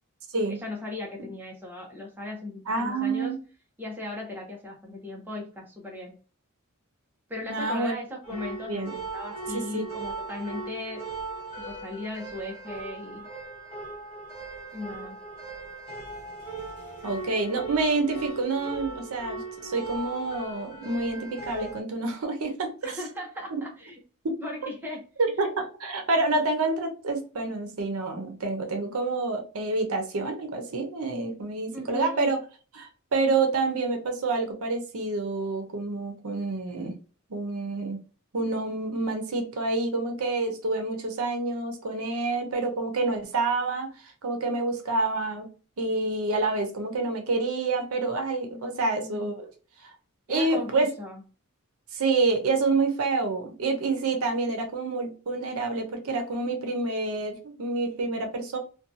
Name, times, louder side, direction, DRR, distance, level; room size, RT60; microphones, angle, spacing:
voice 1, 0.5-3.3 3.8-6.2 7.3-11.1 11.6-13.3 14.7-15.2 22.8-24.0 24.4-25.0 31.7-32.3 48.5-49.4 50.3-51.2, left 2 dB, 10° right, -2 dB, 0.6 m, -37 dB
voice 2, 2.7-3.4 7.5-7.9 8.7-8.9 9.5-9.9 17.0-23.0 23.5-23.6 24.2-24.3 25.2-32.4 32.7-37.0 37.3-38.0 38.3-45.5 45.8-49.5 49.8-49.9 50.3-50.9 51.9-58.6, right 3 dB, 75° right, 5 dB, 0.6 m, -28 dB
sound 1, 8.2-21.8, right 3 dB, 25° left, 1.0 m, -39 dB
2.6 x 2.2 x 2.6 m, 0.36 s
head